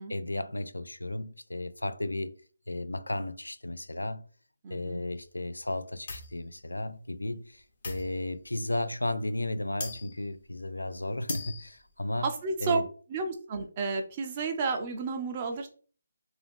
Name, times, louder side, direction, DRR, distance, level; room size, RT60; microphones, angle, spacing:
voice 1, 0.0-2.4 2.7-4.2 4.7-12.3 12.6-12.9, left 1 dB, 85° left, 0.3 m, -34 dB
voice 2, 4.6-5.0 12.2-12.8 13.1-15.7, right 4 dB, 30° right, 0.5 m, -31 dB
sound 1, 6.1-6.4 7.8-8.5 9.3-9.4 9.8-10.3 10.6-10.7 11.1-11.9, left 3 dB, 45° left, 0.8 m, -40 dB
2.7 x 2.3 x 3.4 m
figure-of-eight pair, 150°, 0 cm